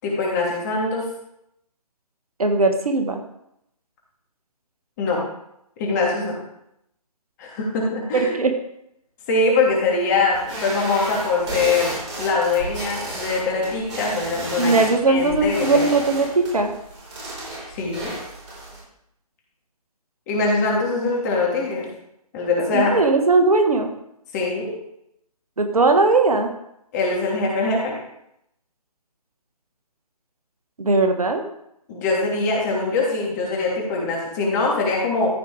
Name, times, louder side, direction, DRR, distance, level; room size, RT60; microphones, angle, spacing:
voice 1, 0.0-1.0 5.0-5.2 5.8-6.4 7.4-8.4 9.3-14.8 15.1-15.9 17.7-18.1 20.3-21.9 22.3-23.0 24.3-24.7 26.9-28.0 31.9-35.3, left 3 dB, 25° left, -2 dB, 2.8 m, -23 dB
voice 2, 2.4-3.2 8.1-8.5 14.6-16.7 22.7-23.9 25.6-26.5 30.8-31.4, right 3 dB, 65° right, 5 dB, 1.5 m, -19 dB
sound 1, 10.3-18.8, right 1 dB, 45° right, 4.5 m, -32 dB
14.0 x 5.1 x 4.8 m, 0.79 s
figure-of-eight pair, 140°, 20 cm